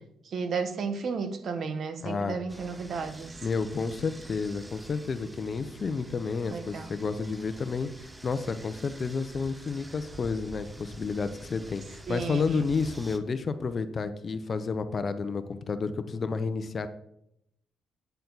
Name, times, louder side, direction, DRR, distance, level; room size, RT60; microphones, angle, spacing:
voice 1, 0.3-3.3 6.5-6.9 12.1-12.7, right 5 dB, 55° right, 1.2 m, -33 dB
voice 2, 2.0-2.4 3.4-7.9 8.2-16.9, left 4 dB, 40° left, 0.7 m, -31 dB
sound 1, 2.5-13.2, right 2 dB, 15° right, 0.8 m, -47 dB
9.3 x 6.7 x 4.0 m
cardioid pair, 90°, 0 cm